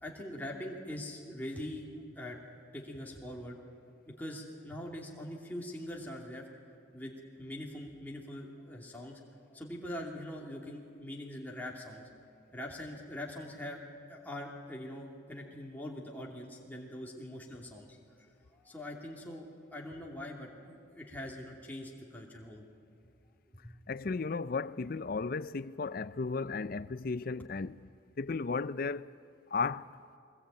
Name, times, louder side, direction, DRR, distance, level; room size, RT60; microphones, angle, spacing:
voice 1, 0.0-1.9 2.2-2.4 2.7-3.6 4.1-6.5 6.9-9.2 9.5-12.1 12.5-13.8 14.1-18.0 18.5-22.6 23.6-23.8, left 1 dB, 10° left, 2.7 m, -43 dB
voice 2, 23.9-27.9 28.2-29.1 29.5-29.9, left 4 dB, 45° left, 0.5 m, -34 dB
22.5 x 20.5 x 8.9 m
head